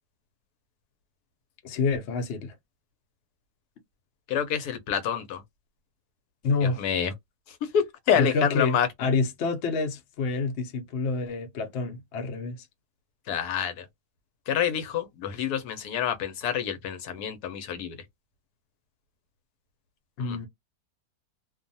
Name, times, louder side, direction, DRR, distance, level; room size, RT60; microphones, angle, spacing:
voice 1, 1.6-2.5 6.4-6.9 8.1-12.6 20.2-20.5, left 4 dB, 60° left, 0.8 m, -28 dB
voice 2, 4.3-5.4 6.8-7.1 7.7-8.9 13.3-13.8 14.5-17.9 20.2-20.4, left 8 dB, 80° left, 1.1 m, -27 dB
2.6 x 2.3 x 2.6 m
omnidirectional pair, 1.7 m